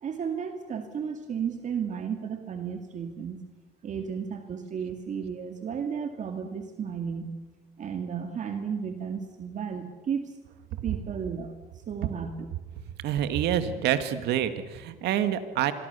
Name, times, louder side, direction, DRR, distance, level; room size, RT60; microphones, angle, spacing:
voice 1, 0.0-3.4 3.8-7.4 7.8-10.3 10.8-11.6 11.9-12.5, right 7 dB, 45° right, 6 dB, 2.2 m, -33 dB
voice 2, 13.0-15.7, right 10 dB, 80° right, 10 dB, 2.0 m, -27 dB
26.0 x 23.0 x 6.9 m, 1.3 s
cardioid pair, 110°, 17 cm